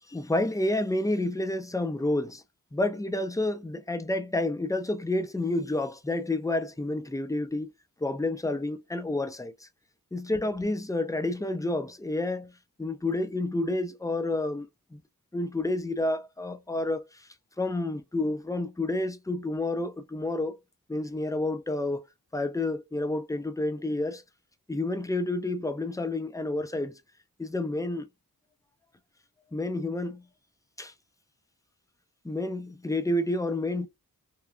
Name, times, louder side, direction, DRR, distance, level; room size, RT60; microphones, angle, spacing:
voice 1, 0.1-2.4 2.7-7.7 8.0-9.7 10.1-12.5 12.8-15.0 15.3-17.3 17.6-20.6 20.9-22.0 22.3-24.2 24.7-27.0 27.4-28.1 29.5-30.2 30.8-30.9 32.2-33.9, left 2 dB, 10° left, 0.4 m, -29 dB
3.1 x 2.2 x 2.3 m
cardioid pair, 55°, 37 cm